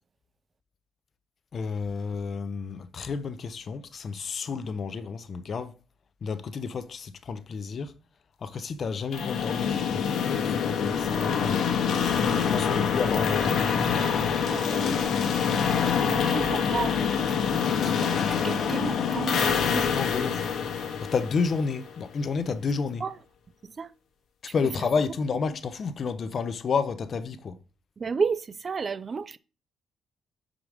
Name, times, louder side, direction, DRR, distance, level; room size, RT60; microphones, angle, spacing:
voice 1, 1.5-5.8 6.2-7.9 8.4-11.6 12.5-13.6 19.6-20.4 21.0-23.1 24.4-27.6, left 5 dB, 50° left, 0.6 m, -31 dB
sound 1, 9.1-22.0, left 7 dB, 70° left, 1.2 m, -26 dB
voice 2, 12.2-12.7 14.5-15.4 16.0-17.5 17.8-19.8 23.0-23.1 23.8-23.9 24.5-24.6 28.0-29.4, right 5 dB, 40° right, 0.4 m, -33 dB
5.0 x 5.0 x 4.9 m
cardioid pair, 90°, 0 cm